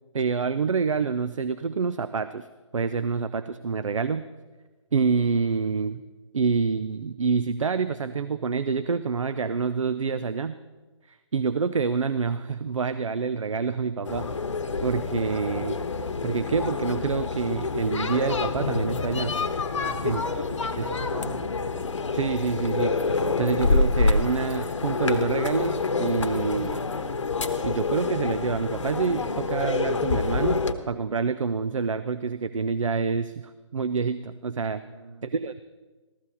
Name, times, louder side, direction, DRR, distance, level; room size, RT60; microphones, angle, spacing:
voice 1, 0.1-2.5 2.7-4.2 4.9-6.0 6.3-10.6 11.1-14.3 14.8-15.8 16.2-19.4 20.0-20.5 20.8-20.9 22.1-23.0 23.4-26.8 27.6-30.6 30.9-34.8 35.2-35.6, right 5 dB, 85° right, 13 dB, 0.6 m, -27 dB
sound 1, 14.0-30.7, left 4 dB, 75° left, 1.1 m, -27 dB
voice 2, 19.7-21.5 34.8-35.2, right 2 dB, 70° right, 0 dB, 4.7 m, -40 dB
14.5 x 14.5 x 4.1 m, 1.3 s
hypercardioid pair, 155°, 16 cm